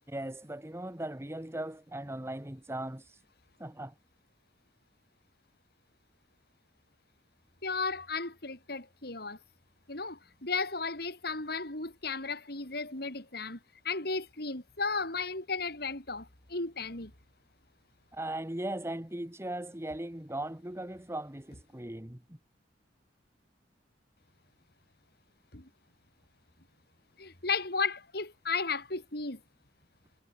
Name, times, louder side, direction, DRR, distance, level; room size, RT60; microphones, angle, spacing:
voice 1, 0.1-3.0 3.6-3.9 18.1-22.4, right 1 dB, 15° right, 1.3 m, -38 dB
voice 2, 7.6-9.4 9.9-13.6 13.8-17.1 25.5-25.7 27.2-29.4, left 4 dB, 60° left, 4.5 m, -34 dB
head